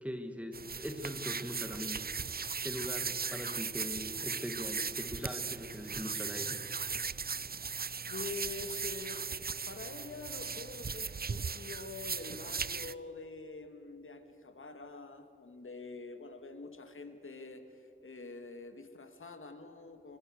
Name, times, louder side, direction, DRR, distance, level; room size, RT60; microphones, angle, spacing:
voice 1, 0.0-2.2 2.6-6.6, equal, 5° right, 6 dB, 2.3 m, -41 dB
sound 1, 0.5-12.9, right 5 dB, 50° right, 0.6 m, -38 dB
voice 2, 8.1-9.2 9.7-20.2, left 3 dB, 80° left, 7 dB, 2.0 m, -46 dB
25.5 x 24.0 x 6.6 m, 2.7 s
wide cardioid pair, 60°, 21 cm